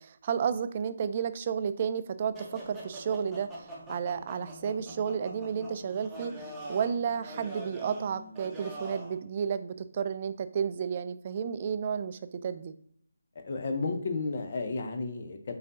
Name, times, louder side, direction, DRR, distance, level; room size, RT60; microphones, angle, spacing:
voice 1, 0.0-12.7, right 7 dB, 35° right, 12 dB, 0.3 m, -32 dB
sound 1, 2.3-9.2, right 1 dB, 5° right, 1.0 m, -43 dB
voice 2, 13.4-15.5, left 3 dB, 45° left, 5 dB, 0.6 m, -32 dB
5.1 x 4.0 x 2.6 m, 0.62 s
figure-of-eight pair, 150°, 0 cm